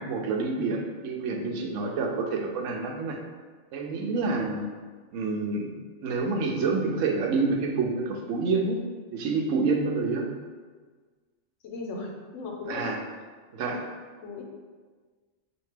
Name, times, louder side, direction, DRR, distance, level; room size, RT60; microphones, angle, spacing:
voice 1, 0.0-3.2 3.7-4.7 5.1-5.7 6.0-8.8 9.1-10.3 12.7-13.0 13.5-13.8, right 4 dB, 85° right, 2 dB, 0.9 m, -28 dB
voice 2, 11.6-13.0 13.7-13.9 14.2-14.4, left 3 dB, 85° left, 0 dB, 1.0 m, -37 dB
4.3 x 2.8 x 3.2 m, 1.5 s
omnidirectional pair, 1.2 m